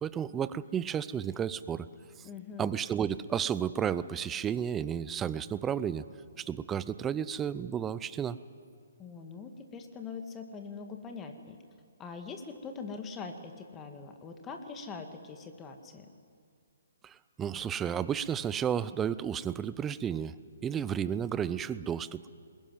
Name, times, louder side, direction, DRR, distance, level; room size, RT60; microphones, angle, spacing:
voice 1, 0.0-1.9 2.6-6.0 6.4-8.4 17.0-20.3 20.6-22.2, right 8 dB, 15° right, 16 dB, 0.7 m, -32 dB
voice 2, 2.2-2.7 9.0-11.6 12.0-16.1, left 5 dB, 20° left, 5 dB, 1.9 m, -43 dB
21.5 x 20.5 x 9.3 m, 2.2 s
figure-of-eight pair, 135°, 0 cm